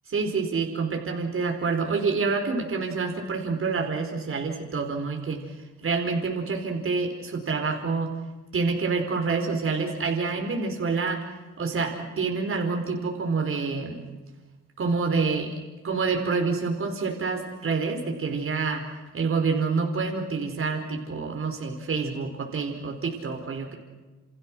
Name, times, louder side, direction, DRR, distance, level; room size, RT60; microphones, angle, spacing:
voice 1, 0.1-5.5 5.8-8.1 8.5-11.2 11.6-14.0 14.8-15.5 15.8-18.9 19.1-23.7, right 4 dB, 45° right, 3 dB, 4.8 m, -27 dB
29.5 x 28.0 x 6.3 m, 1.2 s
cardioid pair, 90°, 30 cm